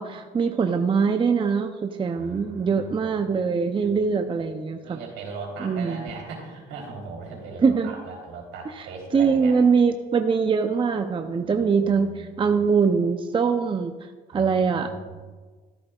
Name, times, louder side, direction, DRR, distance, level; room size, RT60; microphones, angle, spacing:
voice 1, 0.0-5.0 5.6-6.1 7.6-7.9 8.8-8.9 9.1-13.9 14.3-14.9, right 5 dB, 25° right, 6 dB, 0.6 m, -23 dB
voice 2, 2.1-3.1 3.8-4.0 4.4-4.6 4.8-9.6 11.5-12.7 14.3-15.2, right 4 dB, 75° right, -1 dB, 3.6 m, -39 dB
13.5 x 11.5 x 2.4 m, 1.4 s
supercardioid pair, 85°, 21 cm